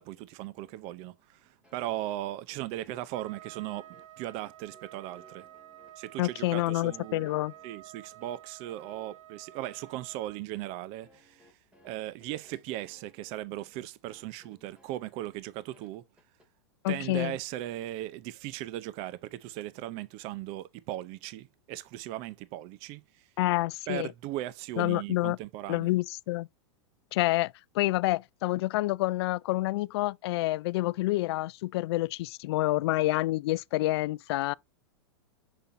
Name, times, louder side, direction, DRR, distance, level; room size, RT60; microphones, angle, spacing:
voice 1, 0.0-3.9 4.2-5.5 6.0-7.3 7.6-11.5 11.8-16.0 16.9-23.2 23.9-25.9, right 14 dB, 40° right, 0.6 m, -38 dB
sound 1, 1.6-16.5, left 1 dB, 5° right, 2.2 m, -62 dB
Trumpet, 3.1-10.4, right 13 dB, 90° right, 1.5 m, -51 dB
voice 2, 6.2-7.5 16.8-17.4 23.4-24.1 24.8-25.4 25.7-26.5 27.1-34.5, left 18 dB, 60° left, 0.4 m, -28 dB
6.8 x 5.8 x 2.6 m
hypercardioid pair, 135°, 15 cm